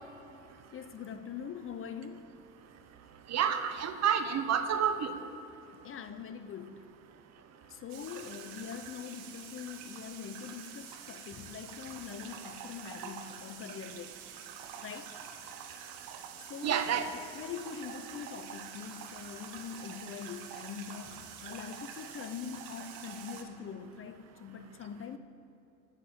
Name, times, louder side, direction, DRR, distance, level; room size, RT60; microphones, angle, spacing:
voice 1, 0.7-2.3 5.8-6.9 7.7-14.2 14.8-15.2 16.5-16.9 17.3-25.2, left 7 dB, 35° left, 11 dB, 0.7 m, -43 dB
voice 2, 3.3-5.1 16.6-17.1, right 8 dB, 45° right, 9 dB, 1.1 m, -29 dB
sound 1, 7.9-23.4, right 8 dB, 65° right, 1.3 m, -47 dB
9.8 x 7.5 x 8.9 m, 2.9 s
hypercardioid pair, 75°, 37 cm